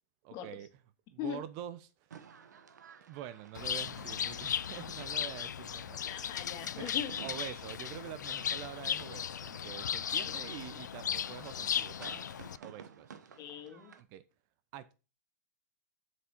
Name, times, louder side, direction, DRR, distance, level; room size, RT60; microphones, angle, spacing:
voice 1, 0.2-0.7 1.1-2.2 3.1-6.0 6.8-6.9 7.2-13.1 14.0-14.2 14.7-14.9, right 11 dB, 40° right, 0.8 m, -46 dB
sound 1, 2.1-14.0, right 7 dB, 80° right, 1.1 m, -55 dB
Bird, 3.5-12.6, left 9 dB, 80° left, 0.4 m, -36 dB
voice 2, 6.1-7.1 10.2-10.4 13.4-13.9, left 9 dB, 40° left, 2.1 m, -40 dB
7.7 x 6.1 x 4.5 m
hypercardioid pair, 115°, 9 cm